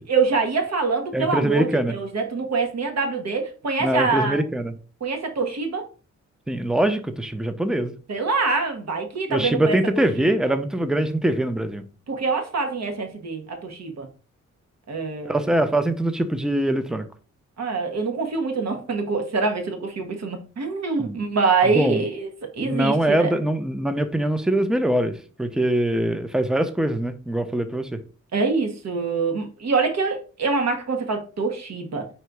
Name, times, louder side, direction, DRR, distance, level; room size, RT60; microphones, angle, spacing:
voice 1, 0.1-4.4 5.0-5.9 8.1-9.8 10.1-10.6 12.1-14.1 14.9-15.4 17.6-23.3 28.3-32.1, right 4 dB, 60° right, 4 dB, 1.3 m, -25 dB
voice 2, 1.1-1.9 3.8-4.7 6.5-7.9 9.3-11.8 15.2-17.0 21.0-21.2 21.7-22.0 22.6-28.0, right 1 dB, ahead, 10 dB, 0.6 m, -23 dB
4.3 x 2.6 x 4.6 m, 0.36 s
cardioid pair, 65°, 30 cm